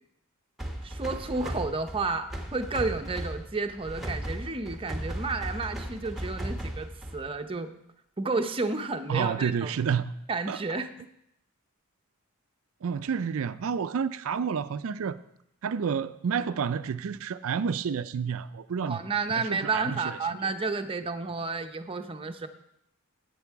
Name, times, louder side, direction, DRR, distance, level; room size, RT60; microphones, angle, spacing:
sound 1, 0.6-7.4, right 1 dB, ahead, 1.2 m, -36 dB
voice 1, 0.8-7.7 8.2-9.7 10.3-10.9 18.9-22.5, right 3 dB, 25° right, 0.7 m, -31 dB
voice 2, 9.1-10.1 10.5-10.6 12.8-15.2 15.6-19.0 19.3-20.2 20.4-20.5, right 6 dB, 70° right, 0.4 m, -30 dB
11.0 x 8.3 x 4.6 m
head